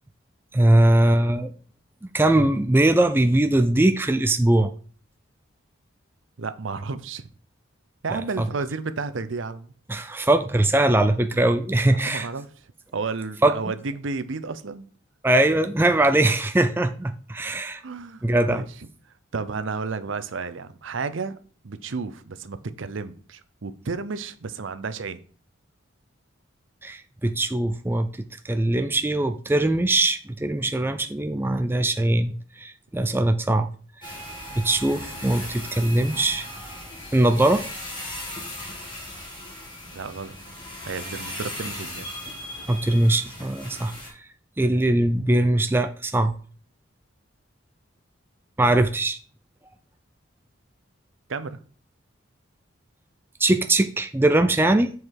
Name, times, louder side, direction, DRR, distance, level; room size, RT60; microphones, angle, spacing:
voice 1, 0.5-1.5 2.1-4.7 8.1-8.5 9.9-12.3 13.4-13.5 15.2-17.8 18.2-18.6 26.8-28.1 28.4-33.7 34.0-34.1 34.6-36.5 37.1-37.6 42.7-43.9 44.2-44.3 44.6-46.3 48.6-49.2 53.4-54.9, right 1 dB, 10° right, 0.3 m, -21 dB
voice 2, 6.4-7.2 8.0-9.7 12.1-12.5 12.9-14.9 17.5-17.6 17.8-18.2 18.5-18.7 19.3-21.4 21.6-25.2 39.9-40.4 40.8-42.1 51.3-51.6, right 4 dB, 70° right, 0.6 m, -32 dB
sound 1, 34.0-44.1, left 1 dB, 25° left, 2.3 m, -37 dB
7.6 x 4.7 x 4.7 m
head